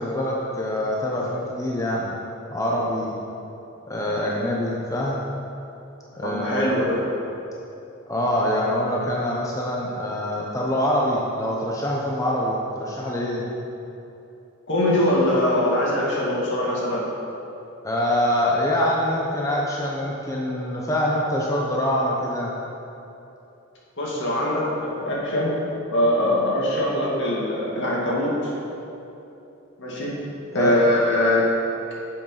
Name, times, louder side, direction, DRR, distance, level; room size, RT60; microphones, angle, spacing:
voice 1, 0.0-2.1 2.5-3.1 3.9-5.2 6.1-6.8 8.1-13.5 17.8-22.5 30.5-30.8, left 1 dB, 15° left, -3 dB, 0.8 m, -25 dB
voice 2, 6.2-7.0 14.7-17.0 24.0-25.5 25.9-28.5 29.8-30.1 30.5-31.4, left 1 dB, 60° left, -5 dB, 2.3 m, -22 dB
7.9 x 7.4 x 5.6 m, 2.9 s
head